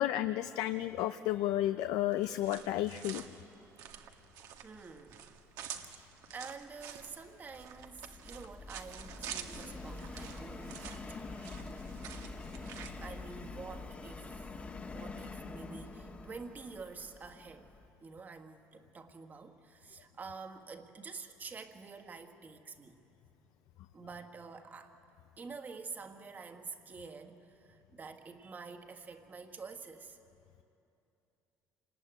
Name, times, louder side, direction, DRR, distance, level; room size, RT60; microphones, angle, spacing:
voice 1, 0.0-3.2, left 13 dB, 85° left, 10 dB, 0.6 m, -32 dB
sound 1, 2.1-13.0, right 9 dB, 75° right, 1.7 m, -48 dB
voice 2, 4.6-5.3 5.8-11.3 13.0-14.5 14.9-17.7 18.0-23.0 23.9-25.0 25.4-30.2, right 4 dB, 30° right, 6 dB, 1.7 m, -48 dB
Subway metro underground, 6.6-17.9, left 3 dB, 25° left, 1.5 m, -46 dB
27.0 x 19.5 x 9.1 m, 2.8 s
cardioid pair, 125°, 6 cm